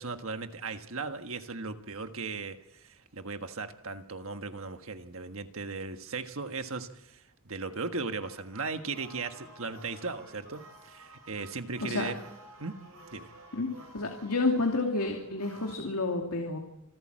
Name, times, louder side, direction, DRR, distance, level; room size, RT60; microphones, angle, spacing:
voice 1, 0.0-7.2 7.4-12.1 12.6-12.7 13.1-13.3, right 4 dB, 65° right, 7 dB, 1.5 m, -37 dB
sound 1, 8.2-15.8, right 1 dB, 80° right, 5.9 m, -52 dB
voice 2, 13.9-16.6, left 3 dB, 85° left, 1 dB, 2.5 m, -29 dB
27.0 x 13.5 x 7.6 m, 0.87 s
head